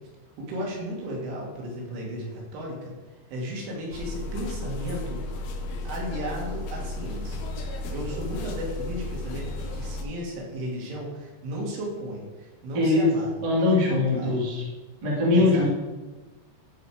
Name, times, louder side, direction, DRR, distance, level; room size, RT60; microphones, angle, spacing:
voice 1, 0.4-2.9 3.3-5.2 5.8-14.4 15.3-15.7, equal, 85° right, -2 dB, 4.7 m, -35 dB
sound 1, 3.9-10.0, left 2 dB, 70° left, 2.4 m, -34 dB
voice 2, 12.7-13.1 13.4-14.6 15.0-15.7, left 3 dB, 30° right, -5 dB, 1.9 m, -21 dB
14.5 x 5.0 x 4.9 m, 1.2 s
omnidirectional pair, 5.5 m